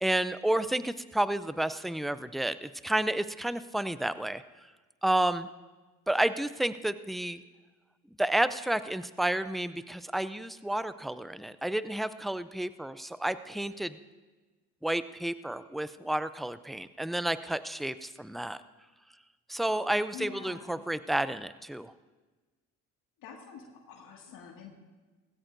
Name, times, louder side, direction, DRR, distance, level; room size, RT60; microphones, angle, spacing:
voice 1, 0.0-4.4 5.0-5.5 6.1-7.4 8.2-14.0 14.8-18.6 19.5-21.9, right 1 dB, ahead, 14 dB, 0.5 m, -31 dB
voice 2, 20.1-20.8 23.2-24.7, left 5 dB, 70° left, 0 dB, 2.2 m, -46 dB
18.5 x 16.0 x 2.7 m, 1.3 s
supercardioid pair, 65°, 35 cm